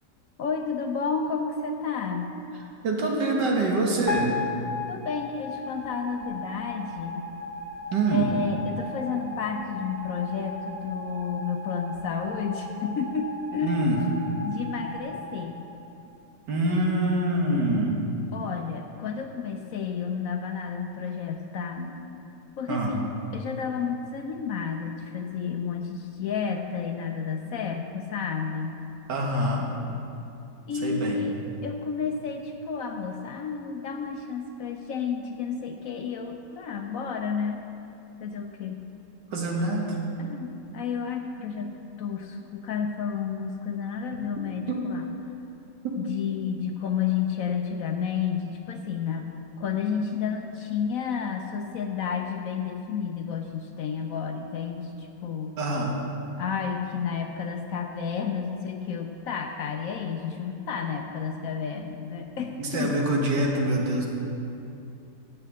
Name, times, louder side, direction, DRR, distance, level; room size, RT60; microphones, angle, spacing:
voice 1, 0.4-2.3 4.9-7.3 8.1-13.8 14.4-15.6 18.3-21.9 22.6-23.1 23.3-28.8 30.7-31.3 31.6-37.6 38.2-38.8 40.2-41.7 42.0-45.1 46.0-49.3 49.6-55.6 56.4-62.9, left 6 dB, 65° left, 4 dB, 0.9 m, -31 dB
voice 2, 2.8-4.4 7.9-8.3 13.6-14.0 16.5-18.0 21.8-21.9 22.7-23.0 29.1-29.7 30.8-31.2 39.3-40.0 44.7-44.8 45.8-45.9 55.6-56.0 62.4-64.1, right 2 dB, 80° right, -1 dB, 2.0 m, -25 dB
sound 1, 4.1-16.3, left 3 dB, 45° left, 1.3 m, -37 dB
7.8 x 7.4 x 7.8 m, 2.7 s
omnidirectional pair, 1.8 m